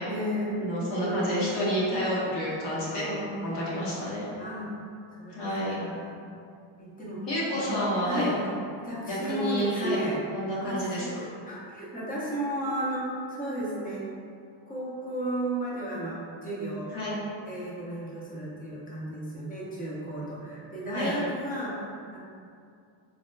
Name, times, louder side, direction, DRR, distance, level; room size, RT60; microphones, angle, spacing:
voice 1, 0.1-1.8 2.9-3.7 4.4-4.7 5.1-6.2 6.8-7.2 7.5-7.7 8.0-8.4 8.8-10.2 10.6-14.1 14.7-16.9 17.5-21.8 22.1-22.2, right 1 dB, 20° left, -6 dB, 0.7 m, -34 dB
voice 2, 0.6-3.1 3.4-4.3 5.3-5.8 7.3-8.3 9.1-10.0 10.3-11.1 16.9-17.1 20.9-21.1, equal, 60° left, -8 dB, 1.2 m, -29 dB
4.1 x 2.1 x 2.2 m, 2.4 s
cardioid pair, 90°, 48 cm